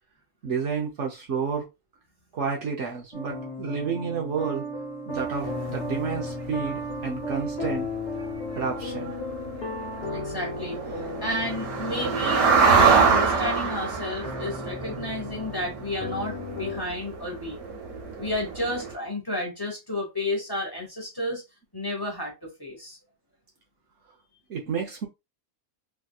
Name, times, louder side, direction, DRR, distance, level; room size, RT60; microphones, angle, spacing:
voice 1, 0.4-1.7 2.3-4.7 5.1-7.9 8.5-9.1 24.5-25.1, right 5 dB, 60° right, 0.9 m, -30 dB
sound 1, 3.1-16.8, left 1 dB, 40° left, 0.9 m, -35 dB
sound 2, 5.2-5.3 5.8-5.9 6.1-6.3 6.7-6.9 7.4-7.5 7.8-7.9 8.1-8.3 8.5-18.9, right 5 dB, 85° right, 1.5 m, -26 dB
voice 2, 10.1-10.8 11.2-17.6 18.2-21.4 21.7-23.0, left 1 dB, 15° left, 1.1 m, -31 dB
3.5 x 2.6 x 2.3 m
omnidirectional pair, 1.5 m